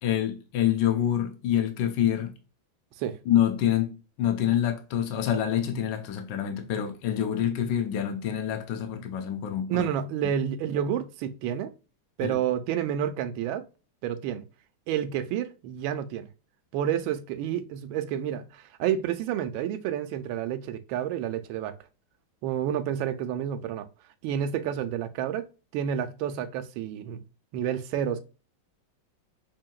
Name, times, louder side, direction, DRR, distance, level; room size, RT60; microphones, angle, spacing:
voice 1, 0.0-2.3 3.3-9.9 10.2-10.3 12.2-12.4, left 10 dB, 70° left, 1.3 m, -26 dB
voice 2, 9.7-11.7 12.2-13.7 14.0-14.4 14.9-16.3 16.7-21.8 22.4-23.9 24.2-27.2 27.5-28.2, right 9 dB, 90° right, 1.4 m, -29 dB
5.7 x 2.7 x 2.2 m
omnidirectional pair, 2.1 m